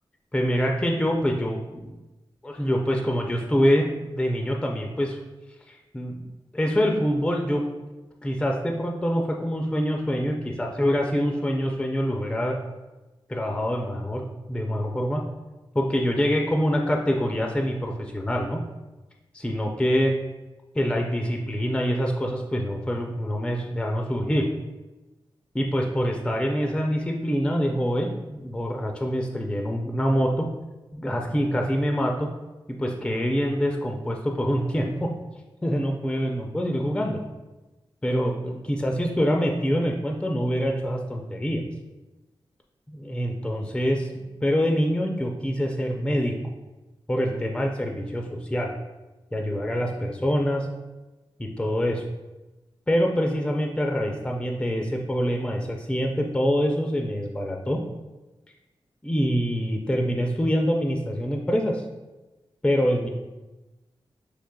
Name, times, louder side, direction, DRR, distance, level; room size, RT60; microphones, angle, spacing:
voice 1, 0.3-1.9 2.4-5.2 5.7-6.2 6.5-7.6 8.2-12.6 13.3-15.2 15.7-18.6 19.3-20.1 20.7-24.5 25.5-30.5 30.9-32.3 32.8-35.1 35.6-37.2 38.0-41.6 42.9-46.4 47.1-48.7 49.3-50.7 51.4-52.0 52.9-57.8 59.0-61.8 62.6-63.1, equal, 10° left, 1 dB, 0.4 m, -25 dB
6.4 x 3.1 x 2.2 m, 1.1 s
wide cardioid pair, 110°, 9 cm